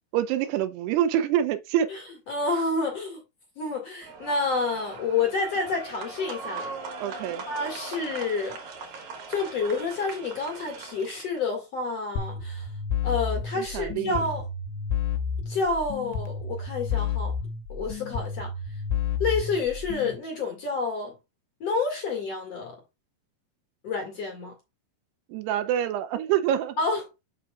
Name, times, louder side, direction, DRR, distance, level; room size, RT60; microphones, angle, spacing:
voice 1, 0.1-2.0 7.0-7.5 13.6-14.3 25.3-26.8, right 10 dB, 80° right, 2.6 m, -26 dB
voice 2, 2.3-3.2 3.6-6.7 7.5-8.6 9.3-12.7 13.0-14.4 15.5-17.3 17.7-18.5 19.2-21.1 21.6-22.7 23.8-24.5 26.8-27.0, left 4 dB, 45° left, 2.7 m, -29 dB
sound 1, 4.0-11.4, right 4 dB, 60° right, 2.2 m, -40 dB
sound 2, 12.2-20.2, left 6 dB, 80° left, 3.2 m, -31 dB
7.6 x 6.4 x 2.4 m
omnidirectional pair, 4.9 m